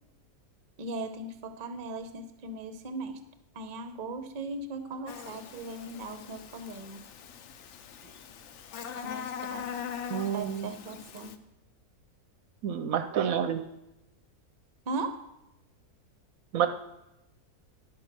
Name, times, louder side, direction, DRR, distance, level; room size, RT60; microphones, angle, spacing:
voice 1, 0.8-3.2 3.5-7.0 8.0-8.1 9.0-9.7 10.3-11.4 14.9-15.2, right 2 dB, 45° right, 9 dB, 0.7 m, -38 dB
Buzz, 5.1-11.4, left 7 dB, 60° left, 0.8 m, -41 dB
voice 2, 10.1-10.7 12.6-13.6 16.5-16.7, right 8 dB, 70° right, 8 dB, 0.9 m, -28 dB
11.5 x 5.3 x 5.9 m, 0.92 s
omnidirectional pair, 1.7 m